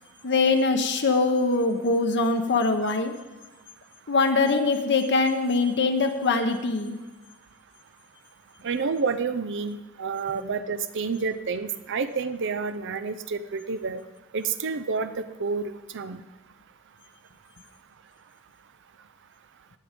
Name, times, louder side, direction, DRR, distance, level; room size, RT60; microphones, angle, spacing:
voice 1, 0.2-3.1 4.1-7.0, left 3 dB, 55° left, 6 dB, 1.0 m, -23 dB
voice 2, 8.6-14.0 14.3-16.2, right 5 dB, 55° right, 10 dB, 0.6 m, -29 dB
19.0 x 7.6 x 5.1 m, 1.2 s
head